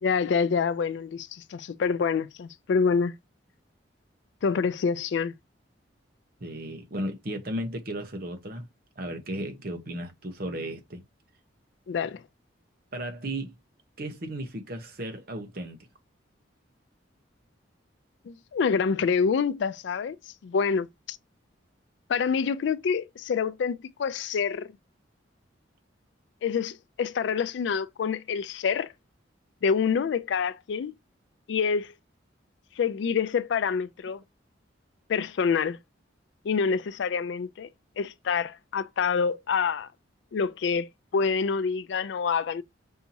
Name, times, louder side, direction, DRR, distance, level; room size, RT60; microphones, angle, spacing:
voice 1, 0.0-3.1 4.4-5.3 11.9-12.2 18.3-20.2 20.4-21.2 22.1-24.7 26.4-28.9 29.6-30.9 31.5-31.9 32.8-34.2 35.1-35.8 36.4-37.7 38.0-39.9 40.3-42.6, left 6 dB, 65° left, 0.3 m, -27 dB
voice 2, 6.4-8.7 9.0-11.0 12.9-13.5 14.0-15.8, right 1 dB, 50° right, 0.9 m, -35 dB
5.5 x 2.8 x 2.7 m
head